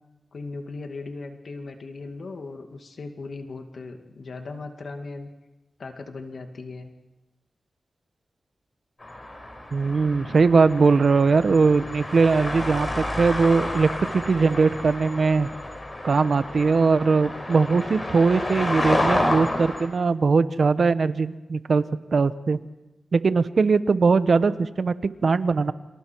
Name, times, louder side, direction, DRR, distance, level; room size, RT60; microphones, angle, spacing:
voice 1, 0.3-5.3 5.8-6.9, left 3 dB, 70° left, 5 dB, 2.3 m, -38 dB
sound 1, 9.0-19.9, left 1 dB, 30° left, 5.3 m, -30 dB
voice 2, 9.7-15.5 16.0-21.8 22.1-22.6 23.1-25.7, right 4 dB, 65° right, 12 dB, 1.1 m, -20 dB
30.0 x 27.0 x 4.7 m, 0.98 s
wide cardioid pair, 80°, 0 cm